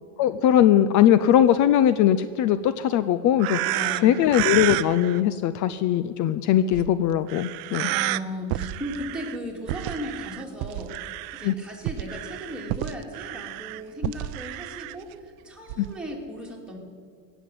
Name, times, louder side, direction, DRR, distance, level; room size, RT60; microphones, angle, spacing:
voice 1, 0.2-3.6 4.0-7.9 11.4-11.5 15.8-15.9, left 10 dB, 55° left, 14 dB, 0.6 m, -20 dB
sound 1, 3.4-5.2 6.7-6.9 7.3-8.2 8.5-9.4 9.7-11.5 11.9-15.0 15.7-15.9, right 18 dB, 80° right, 0.6 m, -30 dB
voice 2, 3.6-4.2 7.9-16.8, equal, ahead, -2 dB, 2.7 m, -36 dB
16.5 x 7.2 x 9.5 m, 2.1 s
cardioid pair, 135°, 36 cm